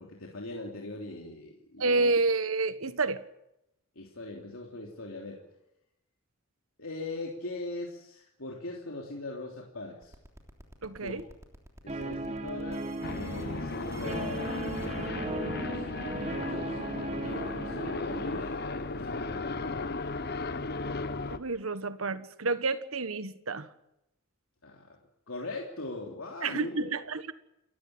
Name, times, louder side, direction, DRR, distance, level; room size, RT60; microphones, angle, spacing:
voice 1, 0.0-2.1 3.9-5.4 6.8-10.1 11.0-11.1 11.8-16.8 17.2-19.9 24.6-25.0 25.3-26.9, left 2 dB, 75° left, -1 dB, 3.3 m, -40 dB
voice 2, 1.8-3.2 10.8-11.2 21.3-23.7 26.4-27.3, right 3 dB, 80° right, 12 dB, 1.4 m, -29 dB
sound 1, 10.0-15.1, right 1 dB, 15° right, 3.2 m, -52 dB
Guitar, 11.9-18.4, right 2 dB, 30° right, 1.2 m, -37 dB
sound 2, 13.0-21.4, left 3 dB, 50° left, 1.1 m, -35 dB
28.5 x 14.5 x 8.8 m, 0.84 s
head